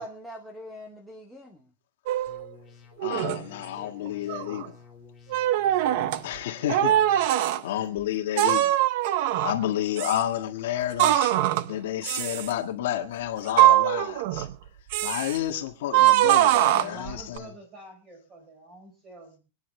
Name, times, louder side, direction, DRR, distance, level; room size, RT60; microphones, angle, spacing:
voice 1, 0.0-1.7 3.7-4.6, equal, ahead, 1.0 m, -44 dB
sound 1, 2.1-2.4 3.0-3.4 4.1-4.7 5.3-6.2 6.7-7.6 8.4-9.6 10.0-10.2 11.0-11.7 12.0-12.5 13.5-14.5 14.9-15.4 15.9-17.4, right 14 dB, 45° right, 0.6 m, -22 dB
sound 2, 2.3-7.3, left 5 dB, 15° left, 3.2 m, -51 dB
voice 2, 3.0-4.7 6.2-8.7 9.4-11.4 11.7-14.5 15.0-17.5, left 12 dB, 60° left, 1.6 m, -30 dB
voice 3, 16.4-19.4, right 1 dB, 20° right, 4.7 m, -46 dB
24.5 x 10.0 x 3.2 m
supercardioid pair, 180°, 0 cm